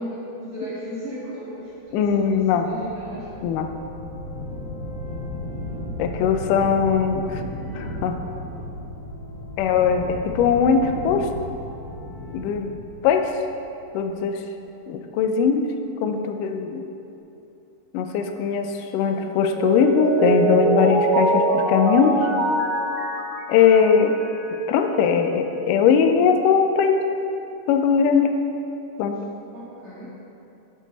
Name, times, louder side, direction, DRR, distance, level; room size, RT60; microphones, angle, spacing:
voice 1, 0.0-3.3 29.5-30.1, equal, 35° right, -10 dB, 2.8 m, -35 dB
voice 2, 1.9-2.7 3.4-3.7 6.0-7.4 7.8-8.1 9.6-11.3 12.3-12.7 13.0-13.3 13.9-14.4 14.9-15.7 16.0-16.8 17.9-22.1 23.5-24.2 24.7-27.0 27.7-28.3 29.0-29.2, left 6 dB, 85° left, 5 dB, 1.8 m, -20 dB
sound 1, 1.9-13.9, left 1 dB, 65° left, 3.6 m, -35 dB
Mallet percussion, 19.5-24.5, right 2 dB, 70° right, 3.3 m, -23 dB
13.5 x 7.6 x 4.0 m, 2.8 s
omnidirectional pair, 4.6 m